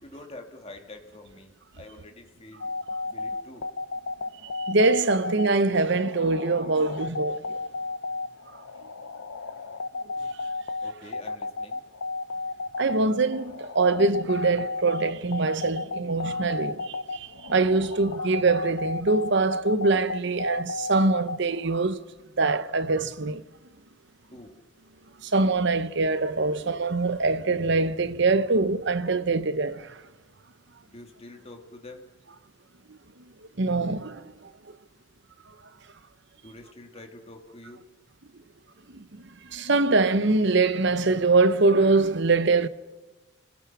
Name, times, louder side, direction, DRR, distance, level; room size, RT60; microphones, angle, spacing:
voice 1, 0.0-2.7 3.0-3.7 10.8-11.8 24.2-24.5 30.9-32.1 36.4-37.8, left 2 dB, 30° left, 2.3 m, -46 dB
sound 1, 2.6-21.8, left 3 dB, 80° left, 0.8 m, -33 dB
voice 2, 4.4-7.6 12.8-22.0 22.4-23.4 25.2-30.0 32.9-33.0 33.6-34.5 38.9-42.7, right 3 dB, 55° right, 0.8 m, -24 dB
30.0 x 20.0 x 6.1 m
head